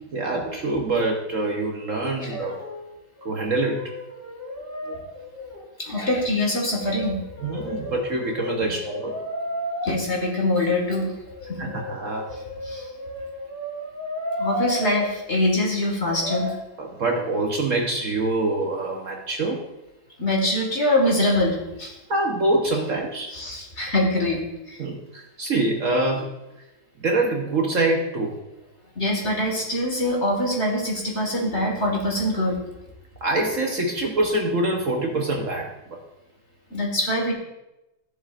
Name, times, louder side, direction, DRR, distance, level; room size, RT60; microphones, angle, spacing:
voice 1, 0.1-2.6 3.2-3.9 4.8-5.0 7.4-9.1 11.6-12.3 16.8-19.7 22.1-23.4 24.8-26.3 27.0-28.4 29.9-30.2 33.2-36.0, right 2 dB, 50° right, 1 dB, 1.0 m, -25 dB
Brass instrument, 2.2-2.9 3.2-5.7 6.7-9.9 11.2-15.1 16.0-16.5, equal, 5° left, 2.8 m, -33 dB
voice 2, 5.8-7.2 8.6-8.7 9.8-11.2 11.5-11.7 12.6-12.9 14.4-16.6 20.2-21.9 23.3-24.8 29.0-32.6 36.7-37.3, left 1 dB, 35° left, -1 dB, 1.9 m, -24 dB
14.0 x 7.2 x 2.5 m, 0.97 s
omnidirectional pair, 2.1 m